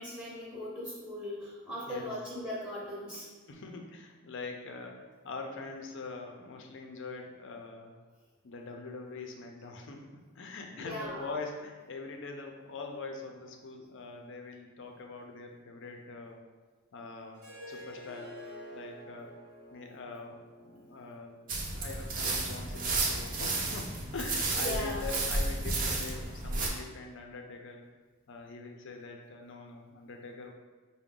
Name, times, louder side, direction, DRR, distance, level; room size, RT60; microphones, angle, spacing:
voice 1, 0.0-3.3 10.8-11.2 24.6-25.0, left 1 dB, ahead, -8 dB, 0.7 m, -38 dB
voice 2, 1.7-2.2 3.5-7.9 8.4-16.4 16.9-18.3 18.7-19.3 19.7-21.4 21.7-27.9 28.3-30.5, left 3 dB, 60° left, 3 dB, 0.5 m, -43 dB
Harp, 17.3-22.5, equal, 85° right, 0.9 m, -49 dB
sound 1, 21.5-26.7, right 2 dB, 40° right, 0.6 m, -32 dB
4.7 x 2.1 x 3.7 m, 1.4 s
head